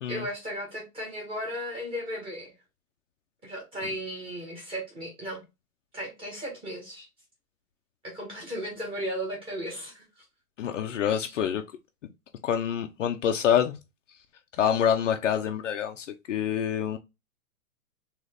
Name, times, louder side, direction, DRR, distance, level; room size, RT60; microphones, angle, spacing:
voice 1, 0.1-2.5 3.4-5.4 5.9-7.1 8.0-10.0 11.2-11.3, equal, 10° right, 1.5 m, -35 dB
voice 2, 10.6-11.6 12.4-13.7 14.6-17.0, left 9 dB, 55° left, 0.6 m, -26 dB
3.9 x 3.1 x 3.3 m
hypercardioid pair, 160°, 45 cm